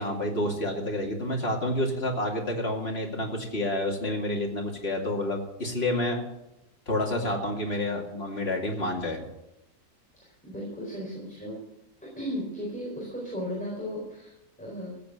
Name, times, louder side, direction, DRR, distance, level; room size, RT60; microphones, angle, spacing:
voice 1, 0.0-6.2 6.9-9.2, left 1 dB, 40° left, 0 dB, 2.7 m, -29 dB
voice 2, 10.4-11.6 12.2-15.0, equal, 5° left, -4 dB, 4.1 m, -35 dB
15.0 x 8.6 x 7.6 m, 0.90 s
omnidirectional pair, 1.6 m